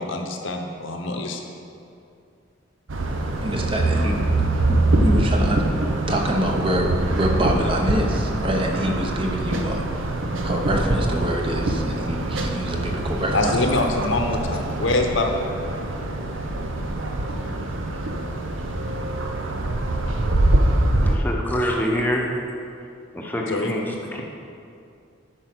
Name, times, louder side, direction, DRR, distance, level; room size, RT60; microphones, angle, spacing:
voice 1, 0.0-1.4 13.3-15.5 23.5-23.7, left 2 dB, 65° left, 3 dB, 0.9 m, -24 dB
sound 1, 2.9-21.2, right 2 dB, 70° right, 0.8 m, -24 dB
voice 2, 3.4-5.6 6.1-9.8 10.4-13.5, equal, 25° right, 1 dB, 0.8 m, -26 dB
voice 3, 21.0-22.3 23.1-24.2, equal, 10° left, -1 dB, 0.9 m, -25 dB
9.0 x 5.3 x 6.0 m, 2.5 s
head